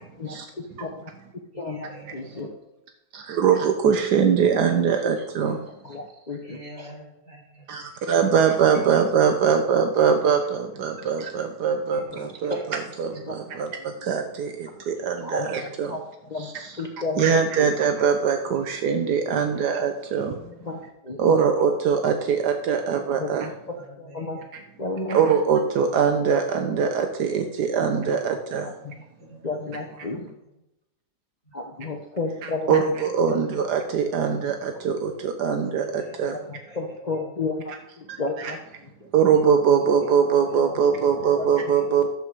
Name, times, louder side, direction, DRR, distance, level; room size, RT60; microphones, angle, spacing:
voice 1, 0.2-1.1 1.6-2.5 5.7-6.9 11.9-12.6 13.2-13.4 13.8-13.9 15.2-17.7 19.3-21.4 23.2-24.4 24.8-25.2 28.3-29.0 29.4-30.3 31.5-32.9 34.1-34.8 36.2-39.1 41.0-41.7, left 3 dB, 35° left, 2 dB, 0.8 m, -34 dB
voice 2, 1.6-2.5 5.4-5.6 6.4-7.7 10.0-10.1 11.9-12.0 12.5-12.9 20.2-20.5 21.9-22.0 22.8-23.1 23.8-24.5 28.9-30.4 31.4-31.5 35.8-37.3 41.4-41.9, right 1 dB, 50° right, -3 dB, 4.6 m, -47 dB
voice 3, 3.1-5.6 7.7-15.9 16.4-16.7 17.2-20.4 21.2-23.5 25.1-28.7 32.7-36.4 38.1-38.5 39.1-42.1, right 6 dB, 80° right, 5 dB, 1.4 m, -22 dB
12.0 x 7.9 x 4.7 m, 0.90 s
omnidirectional pair, 1.8 m